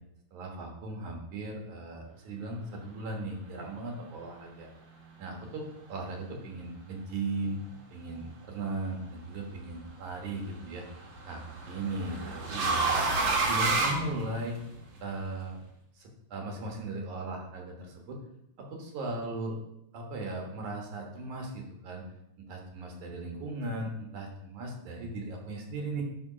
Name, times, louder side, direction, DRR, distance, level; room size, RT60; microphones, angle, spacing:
voice 1, 0.3-4.7 5.2-7.6 7.9-10.8 11.3-13.0 13.5-14.6 15.0-15.6 16.0-18.2 18.6-19.6 19.9-22.0 22.4-26.0, right 2 dB, 80° right, 1 dB, 2.8 m, -37 dB
sound 1, 8.9-9.3 10.8-14.8, right 3 dB, 50° right, 1.6 m, -29 dB
10.5 x 3.6 x 4.9 m, 0.80 s
omnidirectional pair, 3.4 m